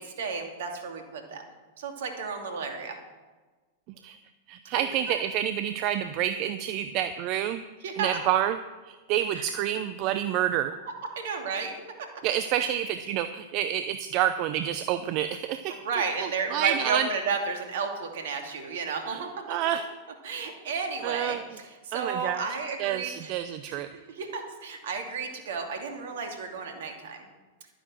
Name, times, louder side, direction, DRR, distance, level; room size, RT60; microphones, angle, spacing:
voice 1, 0.0-1.4 1.8-3.0 7.8-8.1 9.3-9.4 11.2-11.7 12.6-12.7 15.7-19.3 20.2-23.3 23.7-27.3, right 5 dB, 65° right, 3 dB, 2.7 m, -33 dB
voice 2, 4.5-7.6 8.0-8.6 8.9-10.7 12.2-15.8 16.2-17.1 19.1-19.2 19.5-19.8 21.0-21.4 21.9-23.9, right 11 dB, 45° right, 10 dB, 0.7 m, -28 dB
12.0 x 10.0 x 6.3 m, 1.3 s
hypercardioid pair, 100°, 0 cm